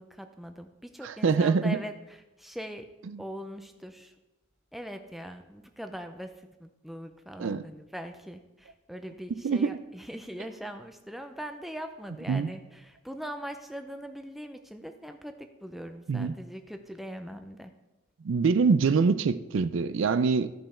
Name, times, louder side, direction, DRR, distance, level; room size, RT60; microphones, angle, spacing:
voice 1, 0.0-2.9 3.2-4.1 4.7-17.7, equal, ahead, 0.5 m, -41 dB
voice 2, 1.0-1.8 3.1-3.2 7.4-7.6 9.4-9.8 12.3-12.5 16.1-16.3 18.2-20.5, right 5 dB, 60° right, 0.4 m, -25 dB
13.5 x 5.4 x 4.3 m
head